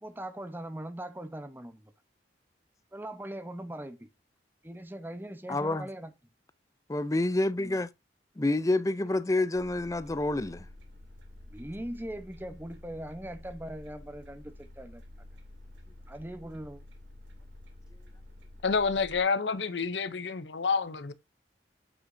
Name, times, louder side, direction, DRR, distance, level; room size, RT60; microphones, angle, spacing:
voice 1, 0.0-1.9 2.9-4.0 4.6-6.1 11.5-15.0 16.1-16.8, right 1 dB, 10° right, 0.9 m, -40 dB
voice 2, 5.5-5.9 6.9-7.9 8.4-10.7, left 2 dB, 20° left, 0.5 m, -28 dB
sound 1, 9.6-19.2, left 1 dB, 90° right, 2.5 m, -50 dB
voice 3, 18.6-21.1, left 5 dB, 80° left, 0.8 m, -28 dB
8.1 x 6.0 x 2.7 m
head